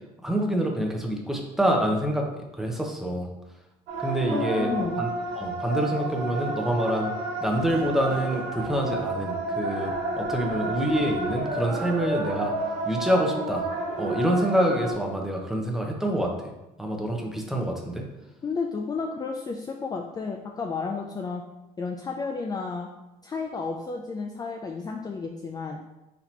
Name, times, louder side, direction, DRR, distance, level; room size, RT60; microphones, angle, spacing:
voice 1, 0.2-2.3 2.5-3.3 4.0-4.7 5.0-7.1 7.4-12.5 12.8-13.7 14.0-16.5 16.8-18.0, right 1 dB, ahead, 1 dB, 0.8 m, -26 dB
sound 1, 3.9-14.9, right 2 dB, 80° right, 1.3 m, -30 dB
voice 2, 4.3-5.0 18.4-21.4 21.8-22.9 23.2-25.8, left 4 dB, 25° left, 2 dB, 0.4 m, -32 dB
4.1 x 2.9 x 4.4 m, 1.0 s
cardioid pair, 110°, 17 cm